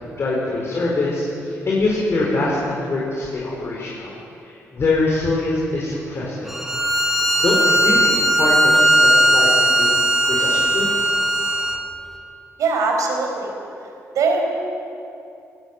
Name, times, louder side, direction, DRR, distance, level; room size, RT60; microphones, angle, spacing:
voice 1, 0.1-4.1 4.4-6.5 7.3-10.0 10.3-11.0, left 2 dB, 50° left, -4 dB, 4.3 m, -23 dB
Bowed string instrument, 6.5-11.8, equal, 5° right, 2.6 m, -17 dB
voice 2, 12.6-13.5 14.1-14.4, right 4 dB, 85° right, 2 dB, 4.8 m, -20 dB
20.0 x 16.5 x 7.7 m, 2.7 s
cardioid pair, 100°, 6 cm